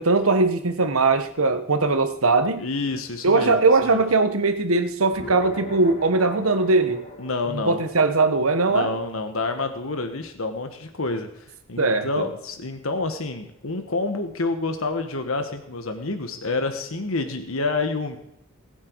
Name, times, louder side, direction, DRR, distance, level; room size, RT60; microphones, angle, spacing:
voice 1, 0.0-2.7 3.2-7.0 7.5-8.9 11.8-12.3, right 3 dB, 80° right, 8 dB, 1.3 m, -20 dB
voice 2, 2.6-4.1 7.2-7.8 8.7-11.3 11.7-18.2, left 3 dB, 75° left, 7 dB, 1.4 m, -28 dB
sound 1, 5.1-9.9, left 1 dB, 40° left, 2.3 m, -40 dB
20.0 x 8.8 x 4.7 m, 0.77 s
head